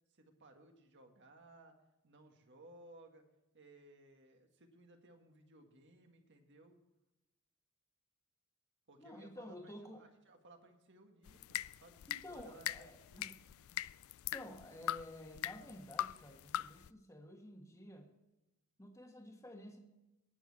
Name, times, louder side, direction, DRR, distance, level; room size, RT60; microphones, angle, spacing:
voice 1, 0.1-1.7 2.0-3.2 3.5-6.8 8.9-12.0 12.3-13.4, right 2 dB, 55° right, 4 dB, 1.9 m, -60 dB
voice 2, 9.0-10.0 12.1-13.3 14.3-18.1 18.8-19.8, left 1 dB, 15° left, 3 dB, 1.6 m, -52 dB
sound 1, 11.3-16.9, left 12 dB, 65° left, 0.3 m, -42 dB
19.5 x 7.2 x 4.2 m, 0.98 s
head